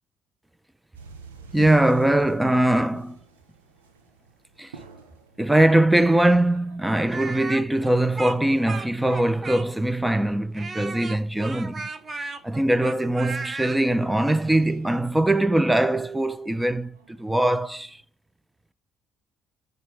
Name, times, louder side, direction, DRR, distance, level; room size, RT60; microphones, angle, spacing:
sound 1, 0.9-18.0, right 5 dB, 90° right, 1.3 m, -51 dB
voice 1, 1.5-3.2 4.6-4.7 5.4-11.9 12.4-18.0, right 1 dB, 10° right, 0.9 m, -21 dB
Speech, 7.0-9.9 10.5-13.8, right 4 dB, 35° right, 1.2 m, -35 dB
14.5 x 5.4 x 3.6 m
hypercardioid pair, 55°, 0 cm